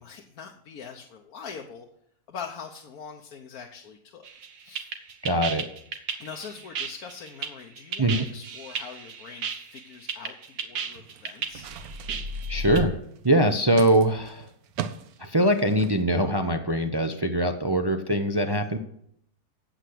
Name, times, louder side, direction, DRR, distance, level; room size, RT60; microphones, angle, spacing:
voice 1, 0.0-1.9 2.3-4.2 4.6-4.9 6.2-11.7 18.4-18.6, left 6 dB, 65° left, 2 dB, 1.4 m, -42 dB
sound 1, 4.3-12.8, right 4 dB, 85° right, 1.7 m, -34 dB
voice 2, 5.2-5.7 8.0-8.3 12.5-13.0 13.2-14.5 15.2-18.8, right 1 dB, 35° right, 6 dB, 0.4 m, -22 dB
sound 2, 10.8-16.0, right 9 dB, 70° right, 1.1 m, -40 dB
9.1 x 8.0 x 7.8 m, 0.70 s
omnidirectional pair, 1.7 m